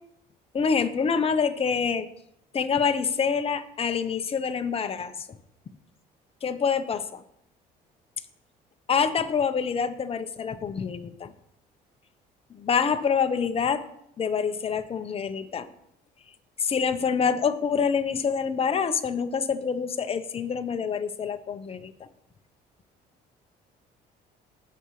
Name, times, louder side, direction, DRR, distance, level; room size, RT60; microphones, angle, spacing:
voice 1, 0.5-2.1 2.5-5.1 6.4-7.2 8.9-11.3 12.6-13.8 14.2-15.7 16.6-21.9, left 6 dB, 35° left, 8 dB, 0.9 m, -26 dB
19.0 x 7.0 x 3.2 m, 0.76 s
cardioid pair, 110°, 17 cm